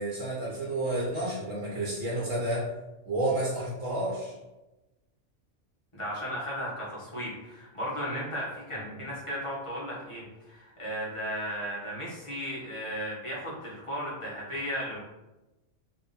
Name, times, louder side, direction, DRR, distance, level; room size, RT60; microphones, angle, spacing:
voice 1, 0.0-2.7 3.0-4.3 8.7-9.0, right 1 dB, 85° right, -6 dB, 1.3 m, -30 dB
voice 2, 5.9-15.0, equal, 25° left, -6 dB, 1.2 m, -35 dB
3.1 x 2.8 x 4.0 m, 1.0 s
omnidirectional pair, 1.3 m